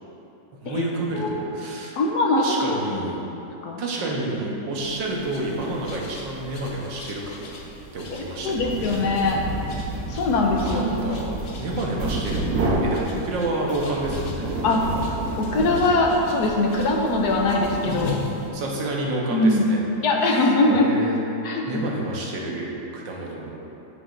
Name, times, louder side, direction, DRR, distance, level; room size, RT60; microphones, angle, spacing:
voice 1, 0.6-2.0 2.4-3.2 3.8-7.5 7.9-8.7 10.6-12.5 12.8-14.5 18.5-19.8 20.3-21.2 21.7-23.5, right 2 dB, 85° right, -2 dB, 1.7 m, -29 dB
voice 2, 2.0-2.8 3.6-3.8 8.1-9.4 10.1-10.8 14.6-14.8 15.4-18.2 19.3-19.6 20.0-20.9 21.4-21.8, left 2 dB, 70° left, 1 dB, 1.2 m, -22 dB
sound 1, 4.8-18.5, left 3 dB, 50° left, 0.7 m, -39 dB
sound 2, 8.4-18.4, right 2 dB, 55° right, 1.2 m, -30 dB
8.7 x 8.1 x 2.5 m, 3.0 s
omnidirectional pair, 1.9 m